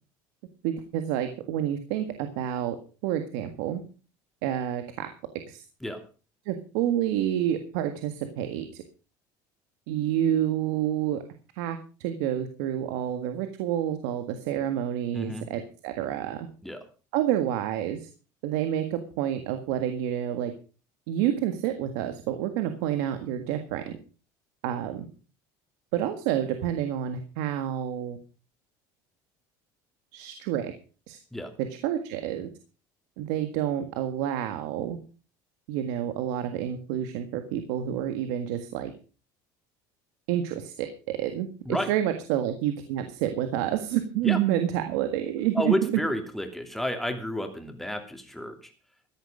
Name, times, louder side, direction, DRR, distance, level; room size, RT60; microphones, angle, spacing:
voice 1, 0.6-2.7 3.0-3.8 4.4-5.1 5.5-5.6 6.4-8.8 9.9-11.2 11.5-16.5 17.1-18.1 18.4-20.5 21.1-24.0 24.6-25.0 25.9-28.2 30.1-30.7 31.1-31.2 31.6-32.5 33.2-35.0 35.7-38.9 40.3-45.9, right 11 dB, 85° right, 8 dB, 1.7 m, -29 dB
voice 2, 15.1-15.5 16.6-16.8 31.3-31.5 41.6-41.9 44.2-44.4 45.5-48.7, left 1 dB, ahead, 5 dB, 2.8 m, -31 dB
14.5 x 11.0 x 5.1 m, 0.36 s
cardioid pair, 130°, 9 cm